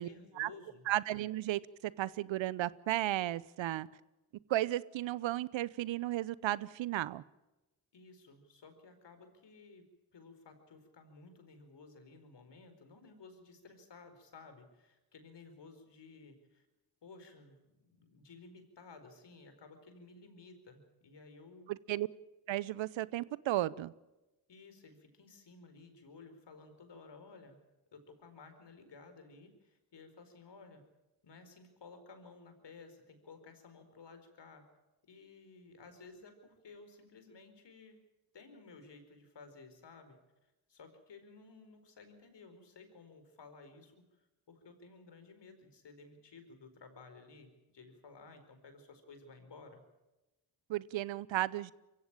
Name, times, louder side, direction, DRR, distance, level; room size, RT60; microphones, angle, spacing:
voice 1, 0.0-0.8 7.9-9.9 10.1-16.7 17.0-17.6 17.9-21.7 24.5-27.6 27.9-30.8 31.2-34.6 35.0-38.0 38.3-40.2 40.4-49.8, left 4 dB, 55° left, 8 dB, 4.7 m, -55 dB
voice 2, 0.9-3.9 4.5-7.2 21.7-22.1 22.5-23.9 50.7-51.7, right 14 dB, 65° right, 21 dB, 0.8 m, -34 dB
23.0 x 16.0 x 8.9 m, 1.0 s
hypercardioid pair, 45°, 49 cm